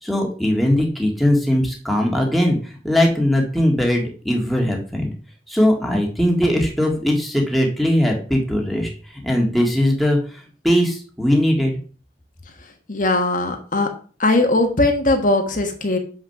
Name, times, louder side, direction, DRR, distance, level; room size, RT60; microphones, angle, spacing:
voice 1, 0.0-5.2 5.5-8.9 9.2-11.7, left 1 dB, ahead, 0 dB, 1.9 m, -20 dB
voice 2, 12.6-13.9 14.2-16.0, left 2 dB, 45° left, 4 dB, 1.4 m, -19 dB
7.3 x 6.2 x 5.9 m, 0.41 s
head